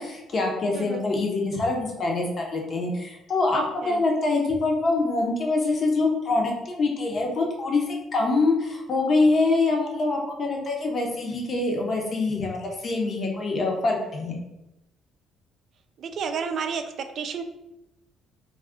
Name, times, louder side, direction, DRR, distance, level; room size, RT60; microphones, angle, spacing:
voice 1, 0.0-14.4, left 3 dB, 50° left, 1 dB, 0.8 m, -25 dB
voice 2, 16.0-17.4, right 6 dB, 60° right, 7 dB, 0.3 m, -31 dB
2.4 x 2.3 x 3.6 m, 0.93 s
hypercardioid pair, 60°, 0 cm